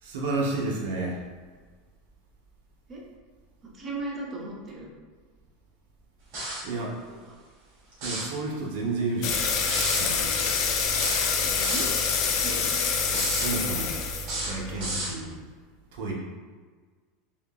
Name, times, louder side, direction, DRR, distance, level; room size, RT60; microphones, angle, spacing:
voice 1, 0.0-1.2 6.6-7.0 8.0-9.4 9.9-10.4 13.1-14.0 14.3-15.4 15.9-16.1, right 3 dB, 75° right, -2 dB, 0.8 m, -31 dB
voice 2, 3.6-4.9 7.1-7.3 11.3-11.9 12.4-12.9, right 2 dB, 20° right, -3 dB, 0.7 m, -37 dB
sound 1, 6.3-6.7 7.9-8.3 9.7-10.1 11.0-11.9 13.1-13.5 14.2-15.1, right 2 dB, 50° right, 1.2 m, -32 dB
sound 2, 9.2-15.0, left 5 dB, 45° left, 0.5 m, -26 dB
3.6 x 3.6 x 2.3 m, 1.5 s
supercardioid pair, 170°, 0 cm